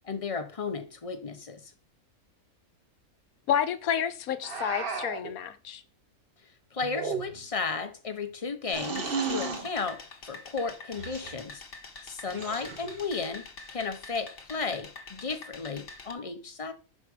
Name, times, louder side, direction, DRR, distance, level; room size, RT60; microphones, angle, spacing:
voice 1, 0.0-1.7 6.7-11.6 12.0-16.7, left 4 dB, 30° left, 0.9 m, -34 dB
voice 2, 3.5-5.8, left 9 dB, 75° left, 1.2 m, -29 dB
sound 1, 4.4-5.3 6.8-7.6 8.7-9.7 10.9-11.4 12.3-13.0, right 4 dB, 40° right, 1.2 m, -34 dB
sound 2, 8.7-16.1, left 3 dB, 45° left, 1.4 m, -46 dB
6.5 x 4.9 x 4.9 m
omnidirectional pair, 1.5 m